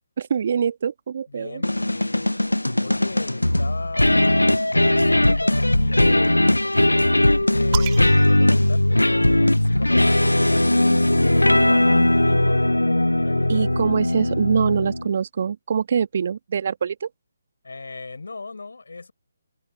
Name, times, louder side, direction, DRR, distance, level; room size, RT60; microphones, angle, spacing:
voice 1, 0.2-1.6 13.5-17.1, right 7 dB, 45° right, 1.4 m, -24 dB
voice 2, 1.3-2.3 2.8-7.1 7.5-12.6 13.2-13.7 17.6-19.1, left 3 dB, 65° left, 5.4 m, -38 dB
sound 1, 1.6-15.1, left 1 dB, 85° left, 0.4 m, -19 dB
sound 2, 7.7-9.5 10.6-12.3, right 18 dB, 25° right, 2.0 m, -38 dB
figure-of-eight pair, 145°, 0 cm